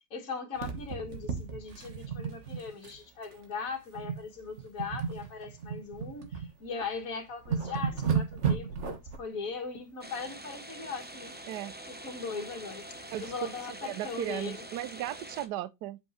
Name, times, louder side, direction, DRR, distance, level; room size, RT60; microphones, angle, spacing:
voice 1, 0.1-11.4 11.9-12.9 13.2-14.6, left 5 dB, 55° left, 2.2 m, -39 dB
sound 1, 0.6-3.0 3.2-3.4 3.9-4.3 4.6-6.5 6.9-7.0 7.3-9.2 11.0-11.6 11.9-13.4 13.8-13.9 14.2-14.3 14.8-14.9, right 6 dB, 45° right, 1.5 m, -34 dB
sound 2, 10.0-15.5, right 1 dB, 10° right, 0.5 m, -45 dB
voice 2, 13.8-16.0, right 13 dB, 80° right, 1.2 m, -36 dB
7.9 x 5.3 x 3.1 m
omnidirectional pair, 1.8 m